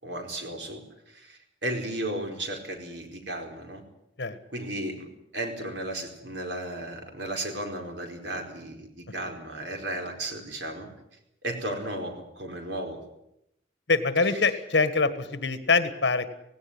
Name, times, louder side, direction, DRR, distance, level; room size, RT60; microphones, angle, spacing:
voice 1, 0.0-3.8 4.5-10.9 11.4-13.0 14.2-14.6, right 1 dB, 65° right, 4 dB, 4.7 m, -35 dB
voice 2, 13.9-16.3, left 4 dB, 65° left, 11 dB, 1.6 m, -24 dB
17.5 x 17.0 x 9.7 m, 0.82 s
head